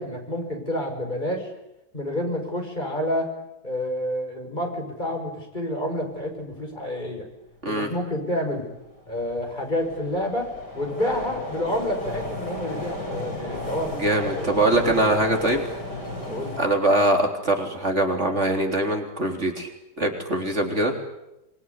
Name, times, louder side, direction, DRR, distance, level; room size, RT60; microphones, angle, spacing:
voice 1, 0.0-1.5 1.9-3.3 3.6-7.2 7.7-8.7 9.1-10.5 10.7-14.5 16.3-16.5, left 1 dB, 25° left, 3 dB, 6.1 m, -29 dB
sound 1, 8.6-16.6, left 1 dB, 80° left, 8.1 m, -34 dB
voice 2, 14.0-15.6 16.6-19.7 20.0-20.9, right 1 dB, 40° right, 3 dB, 4.0 m, -22 dB
27.5 x 22.0 x 9.7 m, 0.92 s
omnidirectional pair, 1.8 m